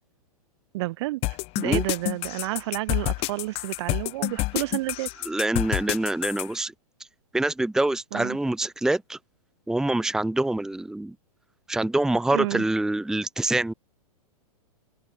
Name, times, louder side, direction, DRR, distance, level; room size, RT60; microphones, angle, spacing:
voice 1, 0.7-1.2 1.6-5.1 8.1-8.4 12.3-12.6, right 19 dB, 45° right, 1.9 m, -30 dB
sound 1, 1.2-6.5, left 23 dB, 30° left, 0.9 m, -28 dB
voice 2, 5.2-6.7 7.3-9.2 9.7-11.1 11.7-13.7, right 2 dB, 5° right, 1.1 m, -25 dB
open air
figure-of-eight pair, 105°, 20 cm